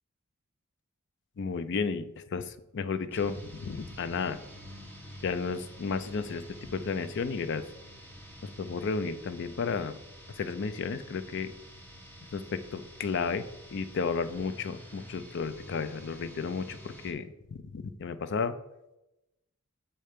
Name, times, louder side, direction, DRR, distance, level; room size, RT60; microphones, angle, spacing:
voice 1, 1.4-4.4 5.2-6.4 6.7-7.6 8.4-10.0 10.3-11.5 12.3-13.5 13.7-18.6, left 5 dB, 50° left, 12 dB, 0.4 m, -33 dB
sound 1, 3.1-17.1, equal, 10° left, 0.8 m, -48 dB
6.5 x 4.4 x 5.0 m, 0.94 s
head